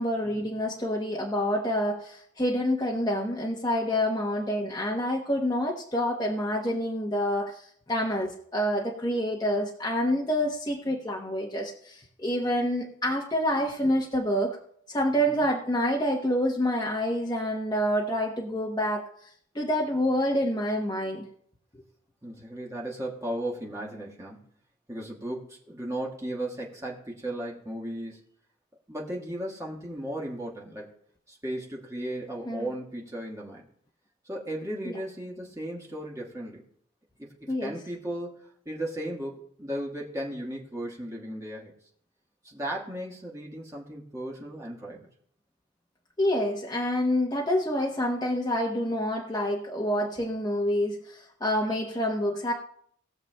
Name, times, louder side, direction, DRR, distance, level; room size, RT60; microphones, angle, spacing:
voice 1, 0.0-14.6 14.9-19.3 19.5-21.2 32.5-32.7 37.5-37.7 46.2-52.5, equal, 20° left, -1 dB, 0.9 m, -27 dB
voice 2, 22.2-24.5 24.9-28.2 28.9-30.9 31.3-33.7 34.2-36.6 37.2-41.7 42.4-45.1, right 1 dB, 15° right, -2 dB, 1.5 m, -36 dB
19.5 x 6.8 x 2.2 m, 0.65 s
head